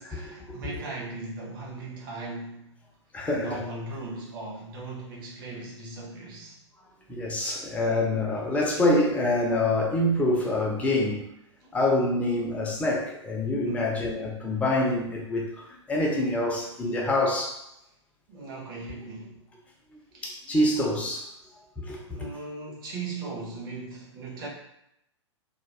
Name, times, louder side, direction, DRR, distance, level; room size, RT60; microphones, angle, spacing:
voice 1, 0.1-2.7 3.2-6.6 11.6-11.7 13.6-14.1 18.3-19.4 20.1-20.3 22.1-24.5, right 3 dB, 45° right, -2 dB, 0.9 m, -38 dB
voice 2, 3.1-3.6 7.1-11.2 11.7-17.6 20.2-21.3 21.8-22.0, left 1 dB, 10° left, -2 dB, 0.5 m, -26 dB
2.4 x 2.2 x 3.2 m, 0.81 s
figure-of-eight pair, 110°, 16 cm